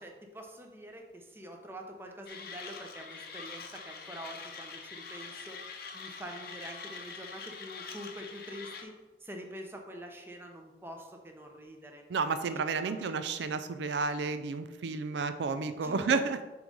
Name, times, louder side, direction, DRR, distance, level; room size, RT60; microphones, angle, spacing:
voice 1, 0.0-5.6 5.9-8.9 9.2-12.0 12.4-13.4 15.8-16.2, equal, 15° right, 2 dB, 0.7 m, -45 dB
Mechanisms, 2.3-8.8, left 5 dB, 55° left, 0.7 m, -44 dB
voice 2, 12.1-16.4, right 4 dB, 75° right, 10 dB, 0.4 m, -31 dB
6.9 x 3.2 x 5.3 m, 1.2 s
head